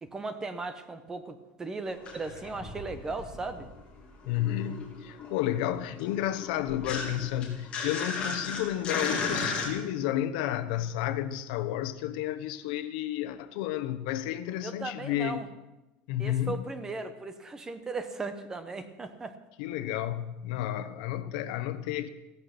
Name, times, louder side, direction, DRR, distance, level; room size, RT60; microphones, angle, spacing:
voice 1, 0.0-3.7 14.6-15.5 16.2-19.3, right 3 dB, 15° right, 0.9 m, -37 dB
sound 1, 1.9-9.7, left 4 dB, 25° left, 3.2 m, -35 dB
voice 2, 4.2-15.4 16.1-16.6 19.6-22.1, left 12 dB, 80° left, 1.0 m, -31 dB
16.0 x 13.5 x 6.0 m
cardioid pair, 180°, 4 cm